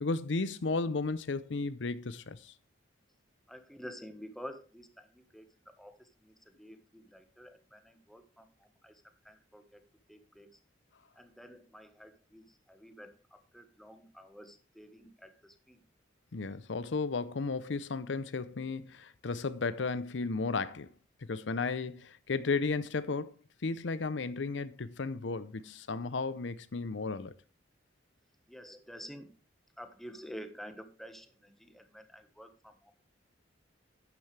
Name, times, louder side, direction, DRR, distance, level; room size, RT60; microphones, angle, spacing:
voice 1, 0.0-2.5 16.3-20.9 21.3-23.4 23.6-27.3, left 4 dB, 75° left, 0.6 m, -34 dB
voice 2, 3.5-9.8 10.1-10.5 11.1-15.8 28.5-29.3 29.8-32.9, equal, ahead, 1.2 m, -50 dB
12.0 x 9.4 x 3.3 m
head